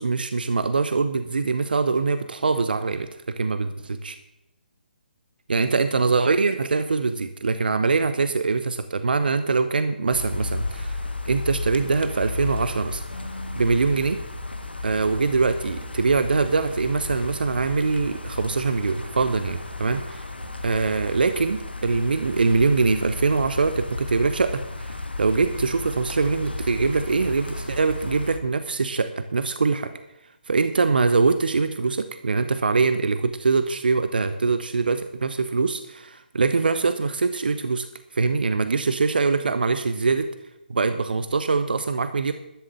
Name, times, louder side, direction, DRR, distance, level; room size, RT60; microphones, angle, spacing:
voice 1, 0.0-4.2 5.5-13.0 13.6-14.2 14.8-20.3 20.6-29.9 30.5-37.9 38.1-40.3 40.7-42.3, right 4 dB, 65° right, 11 dB, 0.9 m, -23 dB
sound 1, 10.1-28.4, left 2 dB, 80° left, 1.6 m, -34 dB
13.0 x 7.6 x 7.6 m, 0.91 s
figure-of-eight pair, 140°, 6 cm